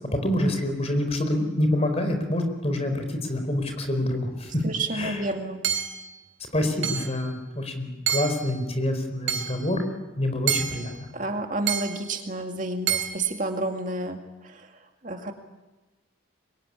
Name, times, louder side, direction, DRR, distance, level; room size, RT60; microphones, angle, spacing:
voice 1, 0.0-4.6 4.9-5.2 6.5-9.8 10.2-10.9, left 1 dB, 30° left, 6 dB, 4.5 m, -26 dB
voice 2, 4.6-5.7 11.1-15.3, right 2 dB, 40° right, 4 dB, 2.2 m, -30 dB
Hammer / Chink clink, 5.6-6.1 6.8-7.2 8.1-8.5 9.3-9.6 10.5-10.9 11.7-12.1 12.9-13.1, right 9 dB, 80° right, 4.0 m, -28 dB
25.5 x 23.0 x 10.0 m, 1.1 s
head